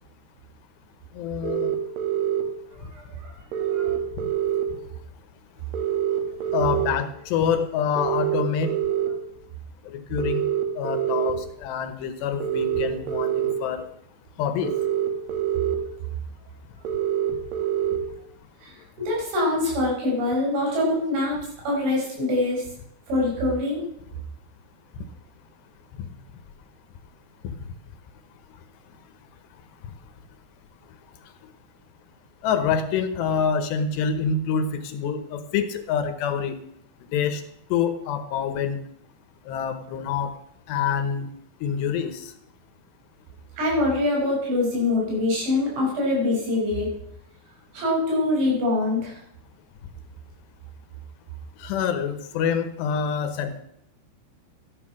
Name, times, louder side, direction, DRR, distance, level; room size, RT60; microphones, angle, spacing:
voice 1, 1.1-1.7 2.8-2.9 4.2-4.3 4.7-4.8 6.5-8.7 9.8-10.4 10.8-13.9 14.4-14.7 26.0-26.1 27.4-27.6 28.5-28.6 29.8-29.9 32.4-36.6 37.1-37.4 37.7-38.8 39.5-40.3 40.7-41.3 41.6-42.3 51.6-53.6, left 7 dB, 75° left, 9 dB, 2.9 m, -26 dB
sound 1, 1.4-2.4 3.5-4.6 5.7-6.9 8.0-9.1 10.2-11.3 12.4-13.5 14.6-15.8 16.8-18.0, right 10 dB, 60° right, 2.6 m, -25 dB
voice 2, 19.0-21.4 21.7-22.7 23.1-23.8 43.6-46.9 47.7-49.2, left 2 dB, 80° right, -3 dB, 8.1 m, -24 dB
13.5 x 10.5 x 6.2 m, 0.76 s
omnidirectional pair, 5.4 m